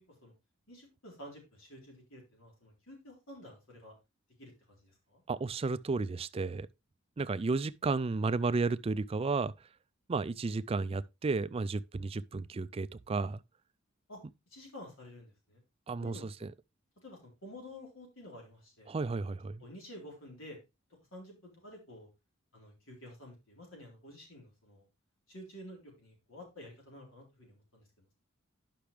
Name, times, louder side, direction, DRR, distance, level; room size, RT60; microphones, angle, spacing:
voice 1, 0.7-3.9 4.4-4.5 4.8-5.2 14.1-14.2 14.5-15.6 16.0-16.5 17.0-18.9 19.6-20.6 21.1-22.1 22.5-24.9 25.3-28.1, left 1 dB, 75° left, 4.0 m, -51 dB
voice 2, 5.3-6.7 7.2-9.5 10.1-13.4 15.9-16.5 18.9-19.6, right 3 dB, 30° right, 0.4 m, -33 dB
10.0 x 5.9 x 3.3 m
head